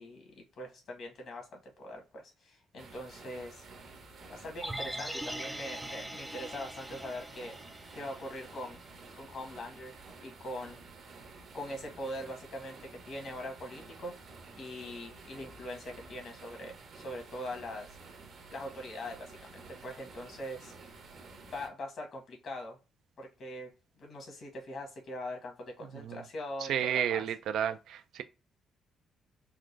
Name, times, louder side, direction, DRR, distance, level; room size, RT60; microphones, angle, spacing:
voice 1, 0.0-3.6 4.3-7.5 7.9-8.8 9.1-10.8 11.5-14.1 14.6-18.0 18.5-20.7 21.4-22.8 23.2-23.7 24.0-27.2, left 1 dB, 60° left, 1.3 m, -42 dB
sound 1, 2.8-21.7, right 4 dB, 60° right, 0.9 m, -51 dB
sound 2, 4.6-8.8 9.1-9.2, right 1 dB, 5° right, 0.4 m, -42 dB
voice 2, 26.7-28.2, right 9 dB, 80° right, 0.3 m, -31 dB
3.6 x 2.2 x 3.1 m
cardioid pair, 90°, 0 cm